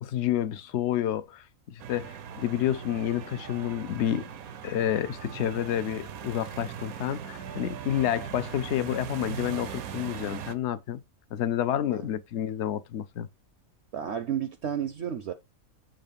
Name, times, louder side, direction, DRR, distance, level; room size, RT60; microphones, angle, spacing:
voice 1, 0.0-4.3 4.6-11.0 11.3-13.3, left 11 dB, 60° left, 0.9 m, -29 dB
sound 1, 1.8-10.5, right 8 dB, 85° right, 1.2 m, -40 dB
voice 2, 13.9-15.3, right 9 dB, 60° right, 0.8 m, -32 dB
7.5 x 2.5 x 5.1 m
omnidirectional pair, 1.5 m